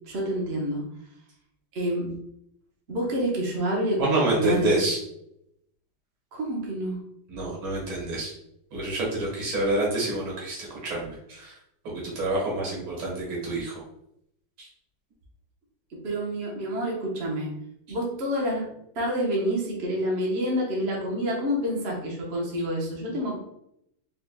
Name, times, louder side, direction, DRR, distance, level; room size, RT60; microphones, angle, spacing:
voice 1, 0.0-0.9 1.7-2.1 2.9-4.8 6.3-7.0 16.0-17.5 17.9-18.7 18.9-23.4, equal, 40° right, -2 dB, 1.0 m, -28 dB
voice 2, 4.0-5.0 7.3-8.3 8.7-11.6 11.8-13.8 14.6-14.7, right 2 dB, 80° right, -4 dB, 2.3 m, -28 dB
4.4 x 3.6 x 2.3 m, 0.77 s
omnidirectional pair, 2.2 m